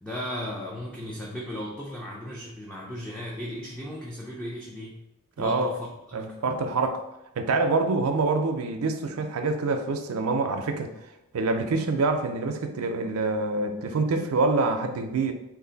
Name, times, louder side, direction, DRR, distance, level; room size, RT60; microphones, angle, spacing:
voice 1, 0.0-5.0 5.4-6.4, left 1 dB, 5° left, -4 dB, 0.4 m, -36 dB
voice 2, 5.4-5.7 6.1-7.0 7.4-10.9 11.3-15.3, right 3 dB, 85° right, 6 dB, 0.5 m, -26 dB
3.2 x 2.5 x 3.9 m, 0.87 s
head